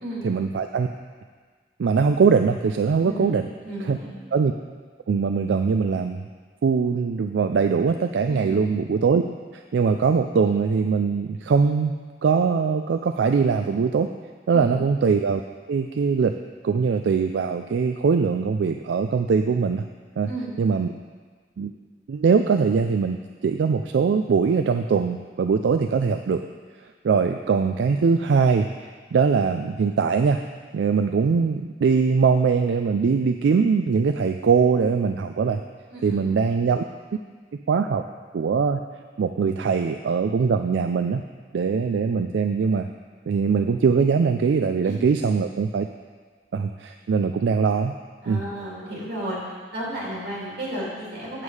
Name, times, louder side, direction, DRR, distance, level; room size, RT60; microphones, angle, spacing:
voice 1, 0.2-0.9 1.8-3.5 3.9-4.0 4.3-4.5 5.1-6.2 6.6-9.2 9.5-12.0 12.2-14.1 14.5-15.4 15.7-16.3 16.6-19.8 20.2-20.3 20.6-20.9 21.6-21.7 22.1-26.4 27.0-30.4 30.7-35.6 36.0-36.8 37.7-38.0 38.3-38.8 39.2-41.2 41.5-42.9 43.3-45.9 46.5-47.9 48.3-48.4, right 5 dB, 85° right, 6 dB, 0.4 m, -21 dB
voice 2, 3.6-4.2 8.3-8.6 14.5-14.8 20.3-20.5 35.9-36.2 44.8-44.9 48.2-49.4 49.7-51.4, right 1 dB, 60° right, -5 dB, 2.9 m, -33 dB
7.9 x 7.3 x 4.8 m, 1.5 s
head